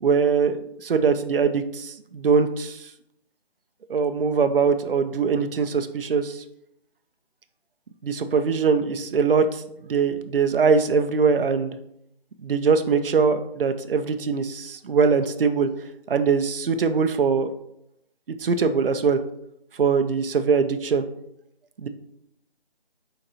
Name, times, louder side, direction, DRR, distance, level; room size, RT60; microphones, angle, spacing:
voice 1, 0.0-2.9 3.9-6.4 8.0-11.8 12.4-15.7 16.1-17.5 18.4-19.2 19.8-21.0 21.8-21.9, right 5 dB, 60° right, 8 dB, 0.4 m, -22 dB
4.3 x 3.9 x 2.8 m, 0.78 s
figure-of-eight pair, 180°, 31 cm